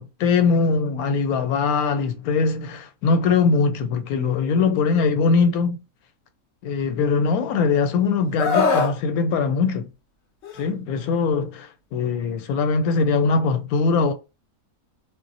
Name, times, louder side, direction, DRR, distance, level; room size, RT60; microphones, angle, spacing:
voice 1, 0.0-5.8 6.6-9.9 10.5-14.1, left 4 dB, 90° left, 1.1 m, -21 dB
Screaming, 8.4-9.0 10.4-10.7, left 4 dB, 65° left, 0.8 m, -21 dB
2.3 x 2.1 x 3.9 m
omnidirectional pair, 1.5 m